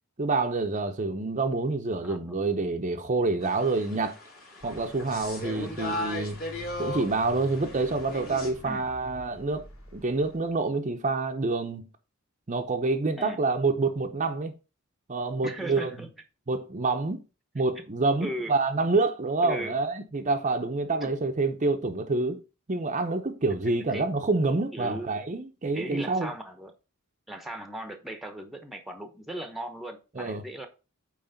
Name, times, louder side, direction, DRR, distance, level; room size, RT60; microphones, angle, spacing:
voice 1, 0.2-4.2 4.6-6.4 6.8-9.7 9.9-11.9 12.5-14.5 15.1-15.9 16.5-17.2 17.5-22.4 22.7-26.3 30.2-30.4, right 3 dB, 35° right, 0.7 m, -27 dB
voice 2, 2.0-2.3 5.5-5.7 8.6-8.9 13.2-13.4 15.4-16.1 18.2-18.5 19.4-19.8 21.0-21.1 23.6-24.0 24.7-25.1 25.7-26.7 27.3-30.7, right 1 dB, ahead, 1.0 m, -37 dB
sound 1, 3.4-8.5, left 2 dB, 45° left, 2.5 m, -37 dB
sound 2, 4.6-10.5, left 1 dB, 65° left, 3.0 m, -46 dB
8.8 x 3.2 x 5.7 m
head